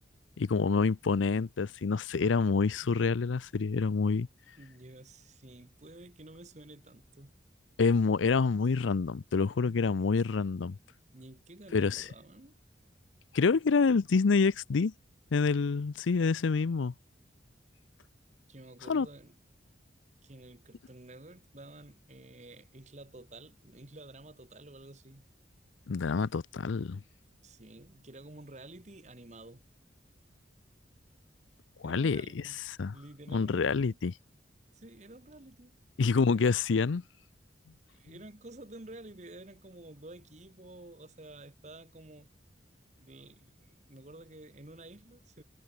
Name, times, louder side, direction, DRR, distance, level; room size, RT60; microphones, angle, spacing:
voice 1, 0.4-4.3 7.8-10.7 11.7-12.1 13.3-14.9 15.3-16.9 18.9-19.1 25.9-27.0 31.8-32.2 32.8-32.9 33.3-34.1 36.0-37.0, left 4 dB, 90° left, 0.5 m, -27 dB
voice 2, 4.6-7.3 11.1-12.6 18.5-19.4 20.2-25.2 27.4-29.7 31.8-32.6 32.9-34.0 34.7-35.8 37.9-42.3 43.0-45.4, right 2 dB, 40° right, 1.4 m, -51 dB
head